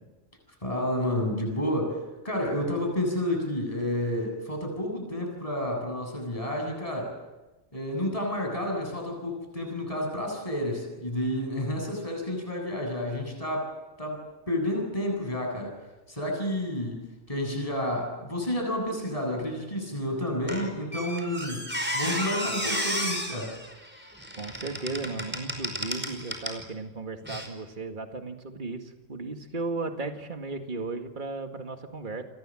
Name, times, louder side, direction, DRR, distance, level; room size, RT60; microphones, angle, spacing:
voice 1, 0.6-2.0 2.2-7.1 7.7-13.7 14.0-14.2 14.5-15.7 16.1-17.0 17.3-21.6 21.9-23.5, left 1 dB, 25° left, 2 dB, 8.0 m, -30 dB
Squeak, 20.5-26.6 27.2-27.5, equal, 10° right, 5.0 m, -33 dB
voice 2, 24.4-32.2, right 3 dB, 35° right, 5 dB, 2.2 m, -35 dB
30.0 x 24.5 x 7.7 m, 1.0 s
omnidirectional pair, 1.4 m